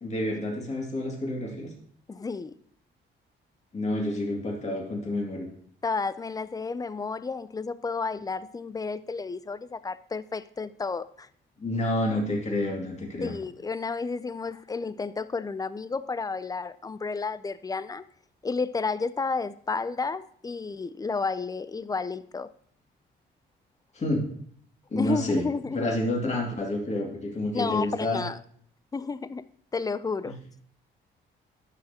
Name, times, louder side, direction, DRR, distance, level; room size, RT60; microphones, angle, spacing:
voice 1, 0.0-1.7 3.7-5.5 11.6-13.3 23.9-24.2 24.9-25.4 25.7-28.2 30.2-30.3, left 1 dB, 35° left, 2.3 m, -29 dB
voice 2, 2.1-2.5 5.8-11.3 13.2-18.0 18.4-22.5 25.0-25.9 27.5-28.4 28.9-29.5 29.7-30.4, left 4 dB, 20° left, 0.4 m, -31 dB
11.5 x 6.5 x 2.9 m
cardioid pair, 90°, 20 cm